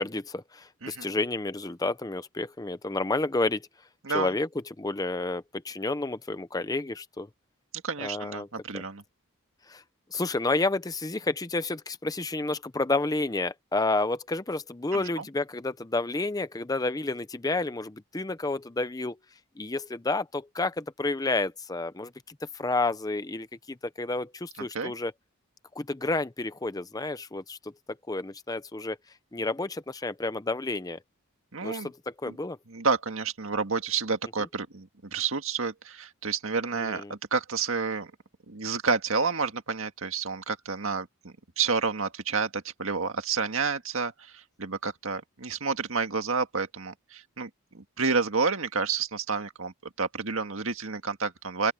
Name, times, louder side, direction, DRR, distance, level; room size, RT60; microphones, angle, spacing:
voice 1, 0.0-3.6 4.1-4.5 4.8-7.3 8.0-8.5 8.7-8.8 9.7-9.8 10.1-19.2 19.6-22.1 22.5-25.1 25.8-27.7 28.1-29.0 29.3-31.0 31.6-31.9 32.2-32.6 36.8-37.1, left 2 dB, 15° left, 0.6 m, -30 dB
voice 2, 7.8-9.0 14.9-15.2 24.6-24.9 31.5-31.9 32.2-32.4 32.7-38.1 38.5-47.5 47.7-51.7, right 4 dB, 60° right, 1.9 m, -30 dB
open air
head